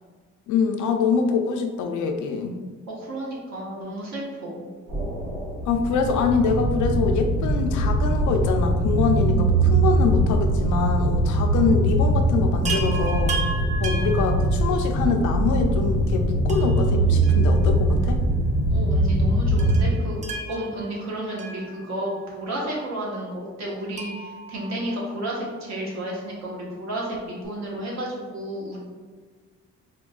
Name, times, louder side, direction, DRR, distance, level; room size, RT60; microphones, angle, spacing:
voice 1, 0.5-2.6 5.7-13.4 13.8-18.2, left 5 dB, 75° left, 5 dB, 0.5 m, -24 dB
voice 2, 2.9-4.7 18.7-28.8, right 1 dB, 60° right, -4 dB, 1.2 m, -32 dB
sound 1, 4.9-19.9, right 1 dB, 80° right, 1.5 m, -22 dB
Chime, 12.6-15.1 16.5-18.0 18.3-18.4 19.6-22.3 23.9-25.6 27.1-27.2 27.4-27.5, right 3 dB, 25° right, 0.4 m, -35 dB
4.3 x 2.2 x 2.3 m, 1.5 s
cardioid pair, 90°, 30 cm